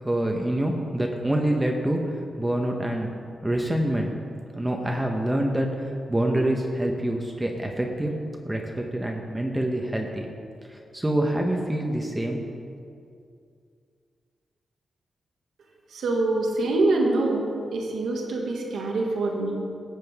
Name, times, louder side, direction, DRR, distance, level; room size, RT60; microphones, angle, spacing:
voice 1, 0.0-3.2 3.4-4.1 4.5-8.1 8.4-10.3 10.7-12.4, right 1 dB, 15° right, 1 dB, 1.1 m, -26 dB
voice 2, 15.9-17.5 17.7-19.5, right 2 dB, 85° right, 0 dB, 1.6 m, -25 dB
15.0 x 7.7 x 3.6 m, 2.3 s
cardioid pair, 70°, 0 cm